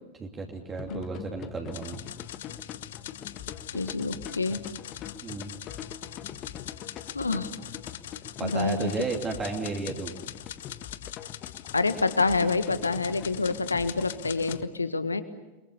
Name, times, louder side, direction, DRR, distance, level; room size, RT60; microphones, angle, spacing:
voice 1, 0.2-2.0 5.2-5.5 8.4-10.1, right 3 dB, 20° right, 1 dB, 2.9 m, -33 dB
sound 1, 0.8-14.6, left 10 dB, 35° left, 1.6 m, -43 dB
sound 2, 1.7-14.6, left 12 dB, 60° left, 0.9 m, -43 dB
voice 2, 3.7-4.6 7.1-7.5 8.4-8.9 11.7-15.2, left 3 dB, 80° left, 11 dB, 1.6 m, -27 dB
29.5 x 23.5 x 7.1 m, 1.1 s
figure-of-eight pair, 90°, 0 cm